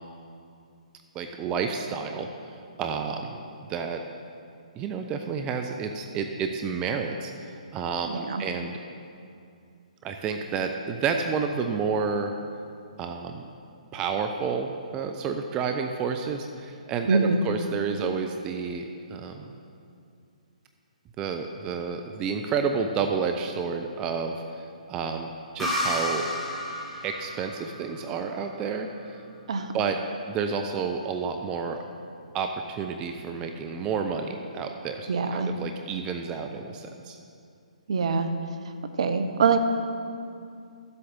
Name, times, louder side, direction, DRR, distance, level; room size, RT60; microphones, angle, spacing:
voice 1, 1.1-3.4 3.7-4.0 4.8-8.7 10.0-12.3 13.0-13.4 13.9-18.8 19.1-19.5 21.2-24.4 24.9-25.3 25.5-26.3 27.0-29.2 29.7-30.0 30.3-31.8 32.3-37.2, right 5 dB, 20° right, 5 dB, 0.5 m, -30 dB
voice 2, 8.1-8.4 17.1-17.5 29.5-29.7 35.1-35.5 37.9-38.3 39.0-39.6, right 4 dB, 55° right, 7 dB, 0.8 m, -24 dB
sound 1, 25.6-29.1, left 1 dB, 5° left, 2.6 m, -32 dB
12.5 x 7.9 x 3.7 m, 2.4 s
figure-of-eight pair, 130°, 4 cm